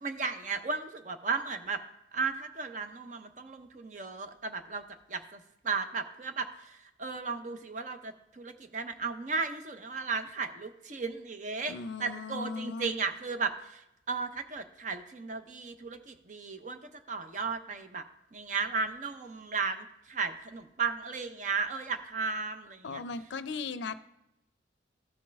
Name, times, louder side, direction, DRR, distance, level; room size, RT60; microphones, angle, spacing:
voice 1, 0.0-1.8 2.1-11.7 12.0-18.1 18.3-23.0, right 4 dB, 40° right, 8 dB, 0.6 m, -35 dB
voice 2, 11.7-12.9 22.8-24.0, left 4 dB, 70° left, 13 dB, 0.4 m, -37 dB
13.5 x 5.3 x 3.4 m, 0.85 s
head